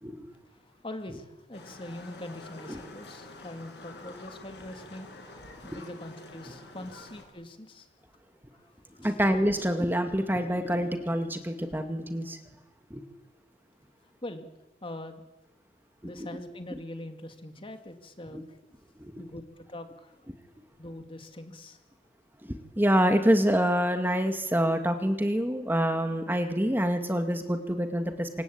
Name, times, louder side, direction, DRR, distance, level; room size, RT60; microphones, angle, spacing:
voice 1, 0.5-7.9 8.5-9.1 14.2-14.5 14.8-15.2 16.0-18.6 19.2-20.3 20.8-21.8, left 1 dB, 30° left, 7 dB, 2.4 m, -43 dB
Livestock farm animals working animals, 1.5-7.2, left 2 dB, 65° left, 7.7 m, -47 dB
voice 2, 9.0-12.4 12.9-13.0 16.0-16.1 18.3-18.4 19.0-19.2 22.8-28.3, equal, 10° right, 6 dB, 2.2 m, -26 dB
26.5 x 25.0 x 8.8 m, 1.1 s
head